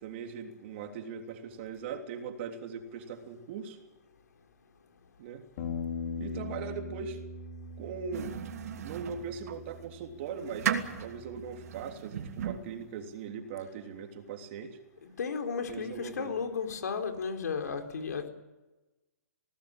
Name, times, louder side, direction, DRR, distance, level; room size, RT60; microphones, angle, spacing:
voice 1, 0.0-3.8 5.2-5.4 6.2-7.2 7.8-8.3 8.8-14.8 15.7-16.3, right 6 dB, 45° right, 5 dB, 3.3 m, -40 dB
Bass guitar, 5.6-11.8, left 3 dB, 50° left, 4.0 m, -41 dB
sound 1, 8.1-9.6 10.1-12.9, right 8 dB, 65° right, 2.8 m, -36 dB
voice 2, 15.0-18.3, left 5 dB, 80° left, 5 dB, 4.1 m, -34 dB
21.0 x 18.5 x 8.9 m, 1.1 s
hypercardioid pair, 150°, 9 cm